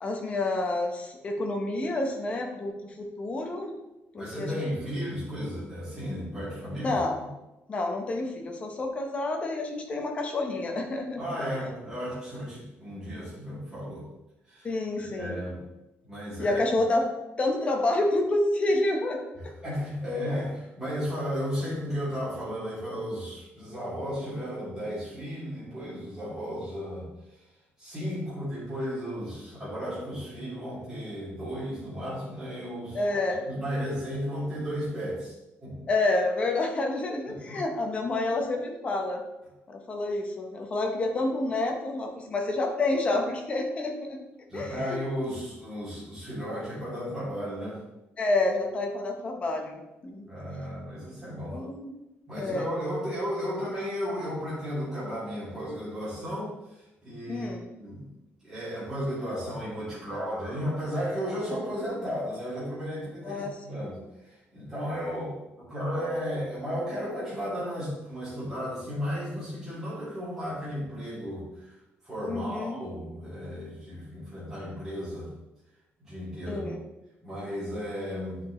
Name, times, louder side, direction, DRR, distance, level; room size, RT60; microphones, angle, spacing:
voice 1, 0.0-3.7 4.1-4.6 6.8-7.2 7.7-11.2 14.6-15.4 16.4-17.1 17.4-19.5 32.9-33.4 35.9-39.2 39.7-44.2 44.5-45.0 48.2-49.8 50.0-50.2 51.5-51.9 52.4-52.7 57.3-57.6 63.2-63.8 72.3-72.8 76.5-76.8, left 2 dB, 30° left, 3 dB, 0.9 m, -29 dB
voice 2, 4.2-7.0 11.2-14.1 14.5-15.6 16.0-16.6 19.6-27.4 27.8-33.0 33.5-35.3 35.6-35.9 37.3-37.6 44.5-47.8 50.3-51.6 52.3-57.5 57.8-58.1 58.4-71.7 72.0-75.3 76.0-76.7 77.2-78.4, equal, 5° right, -12 dB, 2.7 m, -34 dB
9.1 x 4.8 x 3.1 m, 0.95 s
cardioid pair, 180°, 4 cm